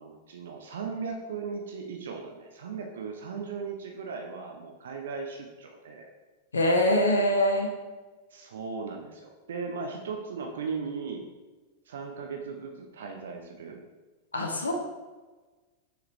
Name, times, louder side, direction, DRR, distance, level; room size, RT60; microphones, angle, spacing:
voice 1, 0.0-6.1 8.3-11.3 11.9-13.8, right 5 dB, 60° right, 2 dB, 0.7 m, -37 dB
voice 2, 6.5-7.7 14.3-14.7, left 1 dB, 75° left, 2 dB, 0.7 m, -23 dB
6.6 x 4.7 x 3.1 m, 1.3 s
figure-of-eight pair, 90°, 0 cm